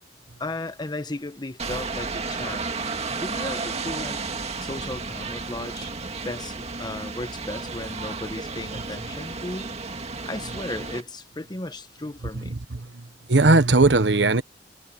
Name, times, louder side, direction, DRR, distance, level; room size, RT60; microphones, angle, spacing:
voice 1, 0.4-2.7 3.1-4.2 4.6-5.9 6.2-9.8 10.3-12.5, left 2 dB, 25° left, 1.2 m, -35 dB
sound 1, 1.6-11.0, right 4 dB, 40° right, 2.0 m, -33 dB
voice 2, 12.3-14.4, right 2 dB, 80° right, 1.2 m, -19 dB
head